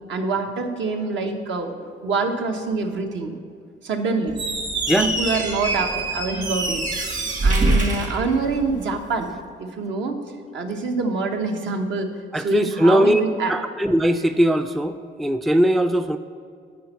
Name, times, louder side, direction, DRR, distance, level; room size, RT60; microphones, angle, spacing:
voice 1, 0.1-1.7 2.0-3.4 3.8-4.4 5.0-6.8 7.4-9.3 9.6-10.2 10.5-12.1 12.4-13.5, right 3 dB, 70° right, 4 dB, 1.1 m, -25 dB
Squeak, 4.3-8.9, right 2 dB, 40° right, 1.5 m, -24 dB
voice 2, 4.9-5.2 12.3-13.2 13.5-16.2, right 1 dB, ahead, 9 dB, 0.3 m, -20 dB
10.0 x 4.4 x 7.0 m, 2.3 s
cardioid pair, 90°, 20 cm